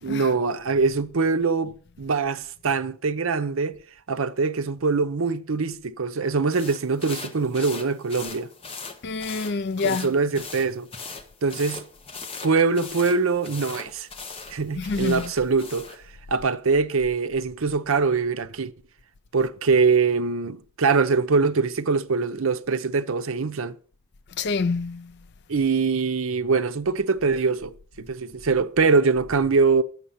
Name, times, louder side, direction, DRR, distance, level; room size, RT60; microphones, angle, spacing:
voice 1, 0.0-3.8 4.1-8.5 9.8-10.9 11.4-11.8 12.4-14.1 14.5-15.9 16.3-18.7 19.3-23.8 25.5-29.8, right 4 dB, 65° right, 0.6 m, -23 dB
sound 1, 6.5-16.0, left 4 dB, 25° left, 0.9 m, -40 dB
voice 2, 9.0-10.2 14.7-15.5 24.4-25.2, left 4 dB, 50° left, 0.4 m, -27 dB
11.5 x 7.3 x 5.7 m
head